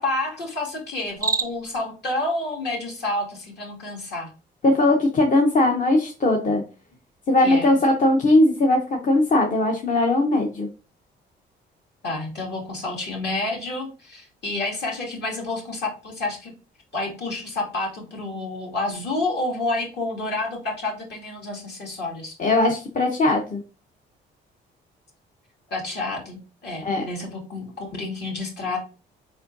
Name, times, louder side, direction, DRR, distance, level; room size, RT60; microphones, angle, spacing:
voice 1, 0.0-4.3 7.4-7.8 12.0-16.5 16.9-22.4 25.7-28.8, left 2 dB, 60° left, -1 dB, 2.3 m, -29 dB
Cricket, 1.0-1.8, right 5 dB, 15° right, 0.5 m, -27 dB
voice 2, 4.6-6.6 7.3-10.7 22.4-23.6 26.8-27.0, left 2 dB, 40° left, 2 dB, 0.8 m, -19 dB
4.5 x 4.2 x 2.6 m, 0.34 s
cardioid pair, 90°, 20 cm